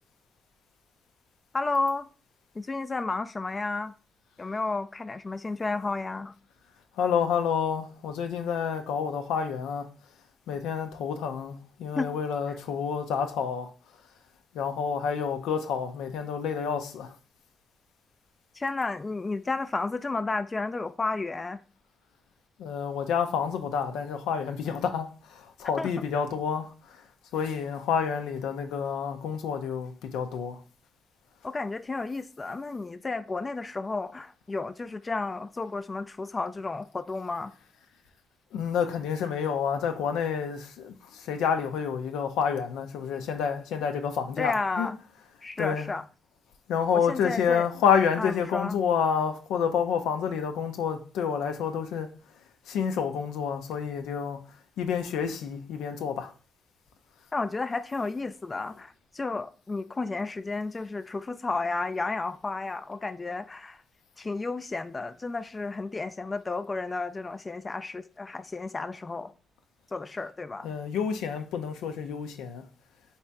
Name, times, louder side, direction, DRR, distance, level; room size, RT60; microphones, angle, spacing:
voice 1, 1.5-2.1 2.6-3.9 4.4-6.3 11.9-12.1 12.5-12.6 18.5-21.6 25.8-25.9 31.4-37.5 44.4-45.0 45.4-46.0 46.9-47.7 48.2-48.8 57.3-63.8 64.2-69.3 69.9-70.7, left 3 dB, 30° left, 0.3 m, -32 dB
voice 2, 7.0-9.9 10.5-13.7 14.5-17.1 22.6-27.0 27.3-30.6 38.5-44.9 45.6-45.9 46.7-52.1 52.7-54.4 54.8-56.3 70.6-72.6, left 7 dB, 90° left, 0.5 m, -29 dB
3.3 x 2.8 x 4.6 m
cardioid pair, 65°, 0 cm